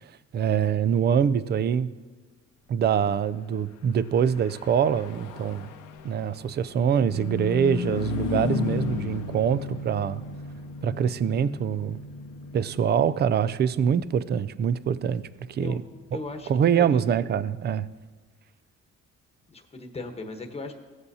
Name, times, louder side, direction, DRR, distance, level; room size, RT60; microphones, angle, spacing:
voice 1, 0.3-1.9 2.7-5.7 6.0-10.2 10.8-12.0 12.5-15.8 16.1-16.2 16.5-17.9, right 8 dB, 35° right, 0.4 m, -24 dB
Car passing by / Truck, 4.0-17.7, left 6 dB, 85° left, 0.8 m, -36 dB
voice 2, 16.1-17.0 19.5-20.7, left 3 dB, 20° left, 1.1 m, -37 dB
16.0 x 7.9 x 2.8 m
cardioid pair, 90°, 30 cm